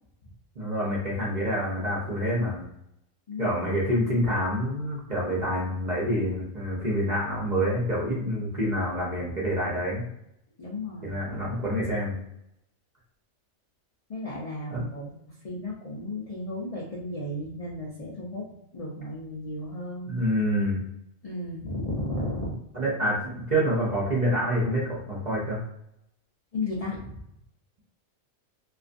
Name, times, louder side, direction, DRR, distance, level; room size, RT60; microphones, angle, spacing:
voice 1, 0.6-2.6 3.4-10.0 11.0-12.2 14.7-14.8 20.1-20.8 22.7-25.6, equal, 45° right, -5 dB, 0.6 m, -27 dB
voice 2, 3.3-3.8 10.6-11.2 14.1-20.1 21.2-22.6 26.5-27.2, left 1 dB, 60° left, -5 dB, 0.3 m, -34 dB
2.5 x 2.3 x 2.5 m, 0.80 s
omnidirectional pair, 1.4 m